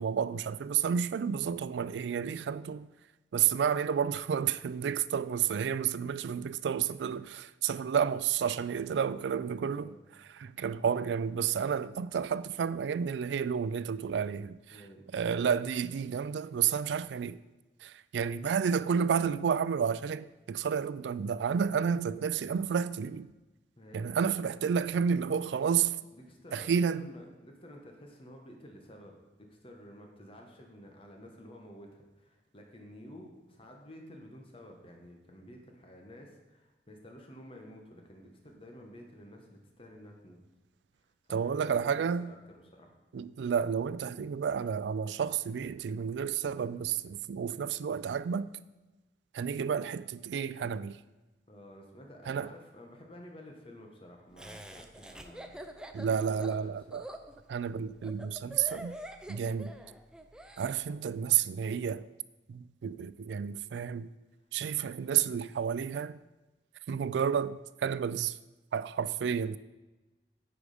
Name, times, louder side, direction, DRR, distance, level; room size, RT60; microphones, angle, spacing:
voice 1, 0.0-2.9 3.3-9.9 10.3-14.6 15.1-17.4 17.8-23.3 23.9-26.0 26.5-27.1 41.3-42.3 43.1-48.5 49.3-51.0 52.3-52.5 55.9-57.0 57.5-59.0 59.3-59.7 60.6-62.1 62.5-64.1 64.5-66.2 66.9-68.4 68.7-69.6, right 7 dB, 80° right, 0.3 m, -31 dB
voice 2, 9.6-10.0 14.7-15.0 23.8-24.4 26.1-29.2 29.6-40.4 41.2-42.4 42.7-42.9 51.5-56.0 56.3-56.7, equal, 30° left, 1.3 m, -51 dB
Laughter, 54.4-60.7, right 1 dB, 5° right, 0.4 m, -45 dB
9.2 x 4.9 x 5.0 m
head